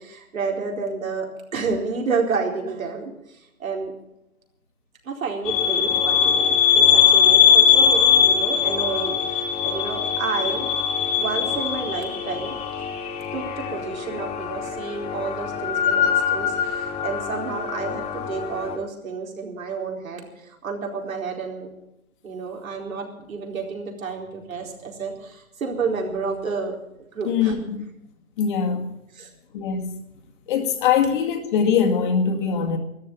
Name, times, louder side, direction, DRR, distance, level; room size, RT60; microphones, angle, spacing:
voice 1, 0.0-3.9 5.0-10.7 11.2-12.9 13.3-21.7 22.2-27.5 29.1-29.3, right 4 dB, 70° right, 4.5 m, -30 dB
sound 1, 5.5-18.8, left 8 dB, 15° left, 2.2 m, -21 dB
voice 2, 27.2-27.9 28.4-29.0 29.5-30.0 30.5-32.8, left 7 dB, 35° left, 2.1 m, -22 dB
13.5 x 11.5 x 9.3 m
hypercardioid pair, 150°, 42 cm